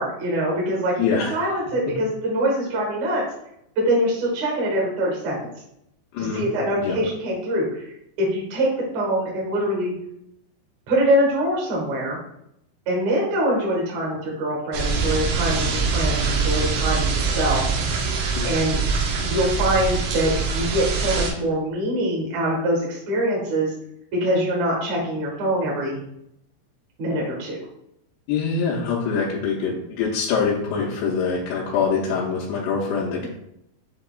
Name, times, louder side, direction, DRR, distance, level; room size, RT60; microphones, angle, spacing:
voice 1, 0.0-3.2 3.8-5.4 6.2-7.8 8.2-9.9 10.9-12.2 12.9-17.8 18.4-18.8 19.2-23.7 24.1-26.0 27.0-27.6, right 1 dB, 60° right, -3 dB, 2.1 m, -24 dB
voice 2, 1.0-1.4 6.1-6.4 6.8-7.0 18.4-18.5 28.3-33.3, left 5 dB, 85° left, -5 dB, 2.7 m, -24 dB
sound 1, 14.7-21.3, right 4 dB, 85° right, 2.1 m, -24 dB
7.5 x 2.9 x 2.3 m, 0.78 s
omnidirectional pair, 4.9 m